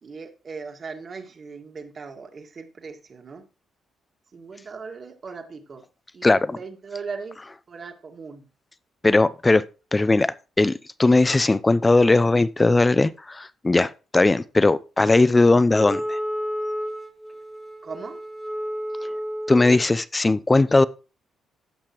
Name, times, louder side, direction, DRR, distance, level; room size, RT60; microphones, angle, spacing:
voice 1, 0.0-3.5 4.3-5.8 6.1-7.4 7.7-8.5 17.8-18.2, right 5 dB, 40° right, 1.8 m, -38 dB
voice 2, 6.2-6.6 9.0-9.6 9.9-10.7 11.0-16.2 19.5-20.8, left 2 dB, 20° left, 0.5 m, -18 dB
Wind instrument woodwind instrument, 15.7-19.9, equal, 5° left, 1.1 m, -31 dB
15.5 x 5.8 x 3.0 m
cardioid pair, 90°, 0 cm